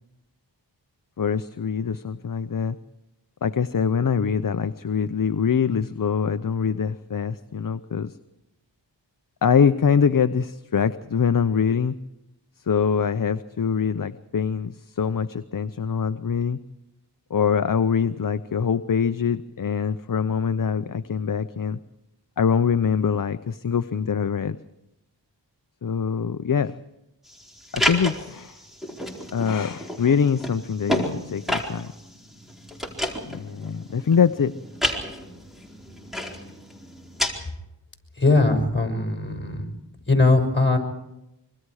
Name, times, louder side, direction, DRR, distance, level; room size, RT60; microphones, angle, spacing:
voice 1, 1.2-2.8 3.4-8.1 9.4-11.9 12.7-16.6 17.3-21.8 22.4-24.6 25.8-26.8 27.7-28.6 29.3-31.9 33.3-34.5, left 6 dB, 45° left, 11 dB, 0.8 m, -24 dB
sound 1, 27.3-37.3, left 1 dB, ahead, 4.3 m, -31 dB
voice 2, 38.2-39.7 40.1-40.8, left 3 dB, 25° left, 2 dB, 6.1 m, -20 dB
25.5 x 24.5 x 4.9 m, 0.88 s
cardioid pair, 50°, 44 cm